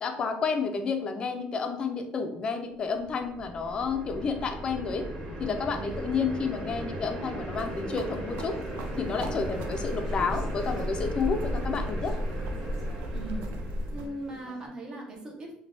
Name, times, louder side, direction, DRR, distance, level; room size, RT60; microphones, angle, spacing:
voice 1, 0.0-5.1 5.4-8.6 9.0-12.2, left 5 dB, 35° left, 6 dB, 0.3 m, -30 dB
sound 1, 2.9-14.3, right 1 dB, 60° right, 1.0 m, -38 dB
voice 2, 5.7-6.1 13.1-13.5 13.9-15.5, right 1 dB, 25° right, 0 dB, 0.5 m, -39 dB
sound 2, 7.5-14.1, equal, 80° right, 0.4 m, -34 dB
Conversation / Chatter, 8.0-14.7, equal, 10° right, 1.2 m, -49 dB
3.2 x 2.1 x 2.5 m, 0.73 s
cardioid pair, 135°, 3 cm